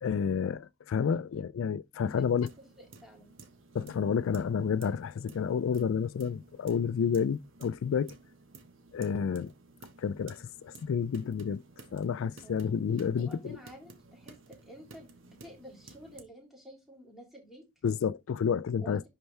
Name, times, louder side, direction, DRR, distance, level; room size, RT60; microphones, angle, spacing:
voice 1, 0.0-2.5 3.7-8.1 8.9-9.5 10.0-11.6 11.9-13.6 17.8-19.1, left 6 dB, 75° left, 0.3 m, -30 dB
voice 2, 1.9-3.3 12.4-12.5 13.2-17.7 18.8-19.1, equal, ahead, 3.2 m, -51 dB
sound 1, 2.1-16.2, right 3 dB, 70° right, 1.4 m, -54 dB
11.0 x 4.5 x 3.3 m
head